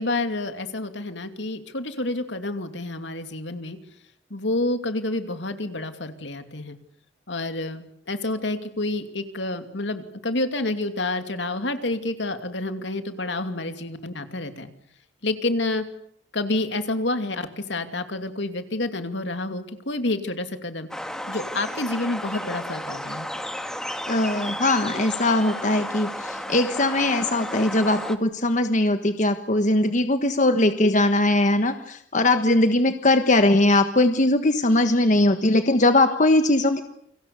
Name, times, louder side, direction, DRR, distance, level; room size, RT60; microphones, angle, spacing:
voice 1, 0.0-3.8 4.3-6.8 7.3-14.7 15.2-15.8 16.3-20.9 21.3-23.3, left 2 dB, 70° left, 8 dB, 2.7 m, -29 dB
sound 1, 20.9-28.2, equal, 5° left, 1.9 m, -33 dB
voice 2, 24.1-36.8, left 2 dB, 40° left, 8 dB, 1.4 m, -20 dB
29.5 x 25.5 x 7.1 m, 0.66 s
head